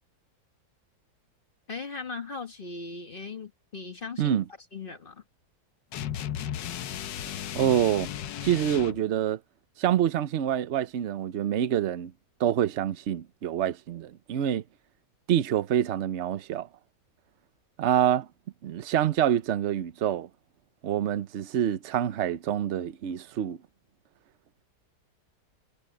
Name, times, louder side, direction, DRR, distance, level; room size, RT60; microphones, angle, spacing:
voice 1, 1.7-4.4 4.7-5.2, left 4 dB, 35° left, 1.5 m, -38 dB
sound 1, 5.9-9.0, left 10 dB, 85° left, 1.5 m, -35 dB
voice 2, 7.5-8.1 8.4-9.4 9.8-12.1 12.4-14.6 15.3-16.7 17.8-18.3 18.6-20.3 20.8-23.6, right 10 dB, 55° right, 0.9 m, -26 dB
omnidirectional pair, 1.9 m